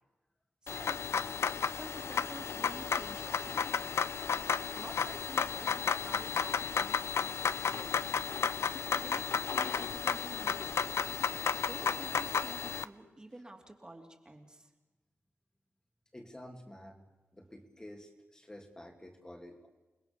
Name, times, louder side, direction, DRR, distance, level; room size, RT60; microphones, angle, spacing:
sound 1, 0.7-12.8, left 6 dB, 85° left, 0.7 m, -33 dB
voice 1, 0.7-1.1 1.7-3.9 4.7-8.2 9.0-10.8 11.6-14.7, right 1 dB, 20° right, 3 dB, 3.0 m, -50 dB
voice 2, 16.1-17.0 17.3-19.7, left 1 dB, 15° left, 2 dB, 2.4 m, -50 dB
29.0 x 20.0 x 6.9 m, 1.1 s
wide cardioid pair, 130°, 4 cm